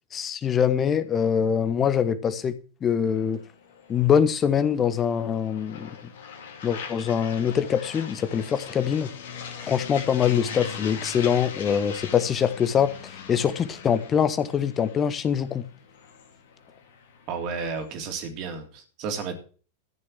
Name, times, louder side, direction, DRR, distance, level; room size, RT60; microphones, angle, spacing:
voice 1, 0.1-2.5 2.8-3.4 3.9-6.0 6.6-9.1 9.6-15.6, left 8 dB, 25° left, 1.2 m, -24 dB
sound 1, 3.1-17.9, left 6 dB, 55° left, 2.3 m, -41 dB
voice 2, 17.3-19.4, right 5 dB, 40° right, 3.4 m, -32 dB
14.0 x 6.5 x 6.2 m
figure-of-eight pair, 90°, 0 cm